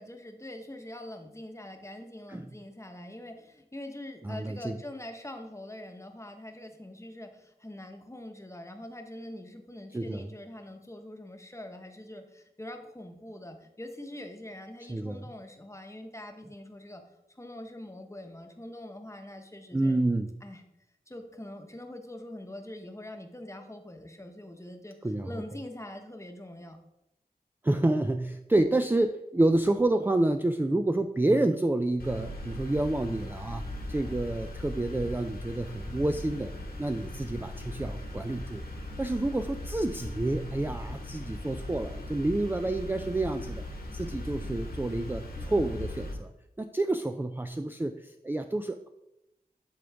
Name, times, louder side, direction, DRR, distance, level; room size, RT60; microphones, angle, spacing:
voice 1, 0.0-17.0 17.3-20.0 20.4-20.6 21.1-24.9 25.3-26.8, left 1 dB, 20° left, 5 dB, 1.0 m, -44 dB
voice 2, 4.2-4.8 9.9-10.3 14.9-15.2 19.7-20.3 25.0-25.3 27.6-36.5 36.8-38.6 39.0-43.6 43.9-46.3 46.6-48.9, right 2 dB, 15° right, 7 dB, 0.3 m, -28 dB
sound 1, 32.0-46.1, left 1 dB, 80° left, 1.4 m, -39 dB
11.0 x 3.9 x 3.5 m, 0.89 s
cardioid pair, 50°, 16 cm